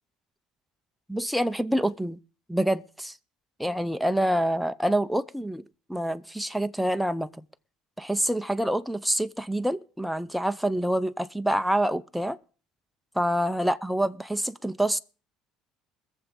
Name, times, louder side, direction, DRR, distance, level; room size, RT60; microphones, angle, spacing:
voice 1, 1.1-2.2 2.5-3.1 3.6-5.6 5.9-7.3 8.0-12.4 13.2-15.0, right 1 dB, ahead, 0.7 m, -26 dB
20.0 x 7.2 x 6.8 m
supercardioid pair, 85°, 0 cm